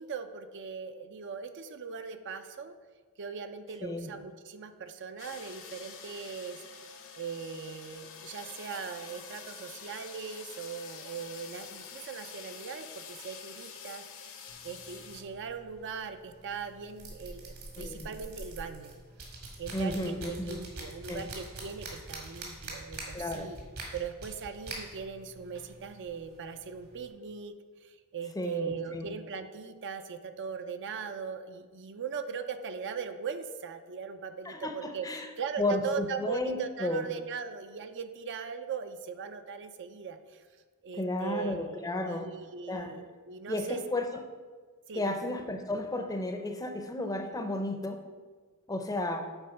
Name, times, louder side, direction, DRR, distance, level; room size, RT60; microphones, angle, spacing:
voice 1, 0.0-2.7 3.2-6.6 7.2-19.0 19.6-23.6 23.9-27.5 27.8-40.4 40.8-43.8 44.9-45.2, right 6 dB, 55° right, 8 dB, 0.5 m, -39 dB
voice 2, 3.8-4.1 17.8-18.1 19.7-20.6 21.1-21.3 23.1-23.5 28.4-29.1 34.4-35.3 35.6-37.0 40.9-42.3 42.7-42.9 43.5-44.1 44.9-48.0 48.7-49.2, left 2 dB, 15° left, 6 dB, 0.6 m, -33 dB
sound 1, 5.2-15.2, left 7 dB, 65° left, 0.9 m, -47 dB
sound 2, 14.5-27.1, right 2 dB, 70° right, 2.2 m, -45 dB
8.0 x 4.3 x 5.7 m, 1.5 s
head